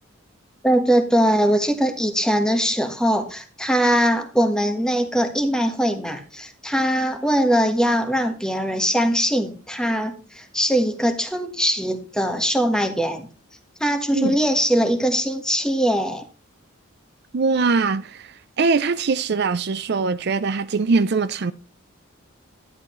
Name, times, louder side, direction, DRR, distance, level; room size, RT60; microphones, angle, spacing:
voice 1, 0.6-13.3 13.8-16.2, equal, 5° left, 1.4 m, -21 dB
voice 2, 17.3-21.5, right 4 dB, 50° right, 0.5 m, -22 dB
12.0 x 10.5 x 3.1 m
head